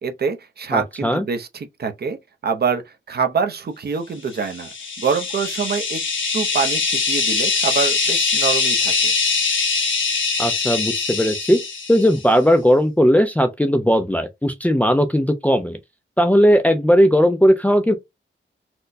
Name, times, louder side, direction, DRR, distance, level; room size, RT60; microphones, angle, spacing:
voice 1, 0.0-2.2 2.4-6.0 6.3-9.1, right 5 dB, 50° right, 0.6 m, -25 dB
voice 2, 0.7-1.2 10.4-11.6 11.9-15.8 16.2-18.0, equal, 5° left, 0.3 m, -17 dB
sound 1, 4.4-12.2, left 4 dB, 70° left, 1.0 m, -22 dB
4.3 x 2.1 x 2.6 m
wide cardioid pair, 170°, 20 cm